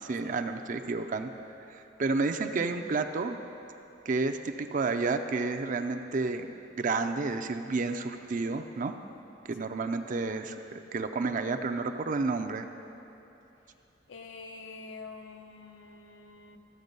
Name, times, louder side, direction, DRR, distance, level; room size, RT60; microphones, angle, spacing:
voice 1, 0.0-1.3 1.7-3.4 4.1-6.5 6.7-8.9 9.5-12.7, right 3 dB, 45° right, 7 dB, 0.5 m, -31 dB
voice 2, 14.1-16.6, left 4 dB, 80° left, 6 dB, 0.7 m, -46 dB
13.5 x 7.1 x 5.3 m, 2.8 s
head